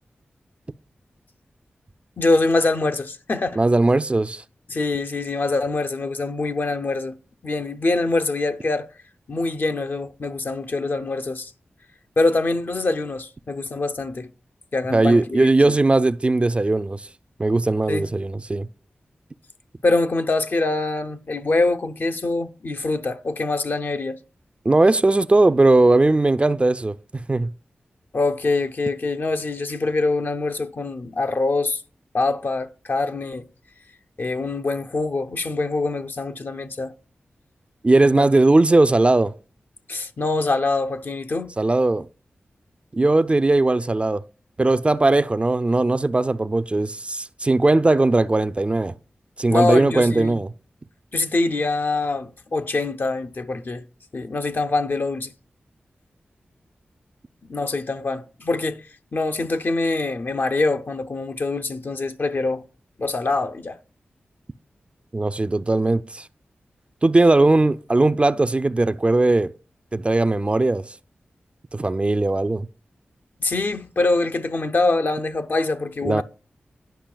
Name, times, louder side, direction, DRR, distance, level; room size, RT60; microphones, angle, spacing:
voice 1, 2.2-3.6 4.7-7.2 7.4-8.9 9.3-11.5 12.2-14.3 14.7-15.7 17.9-18.1 19.8-24.2 28.1-31.8 32.1-33.5 34.2-36.9 38.2-38.3 39.9-41.5 49.5-50.4 51.1-53.8 54.1-55.3 57.5-58.8 59.1-62.6 63.0-63.8 73.4-76.2, left 3 dB, 55° left, 0.5 m, -24 dB
voice 2, 3.6-4.4 14.9-17.0 17.4-18.7 24.7-27.0 27.3-27.5 37.8-39.3 41.6-42.1 42.9-44.2 44.6-48.9 49.4-50.5 65.1-66.2 67.0-69.5 69.9-70.8 71.7-72.7 76.0-76.2, right 2 dB, 30° right, 0.3 m, -18 dB
10.0 x 5.6 x 2.2 m
cardioid pair, 40°, 4 cm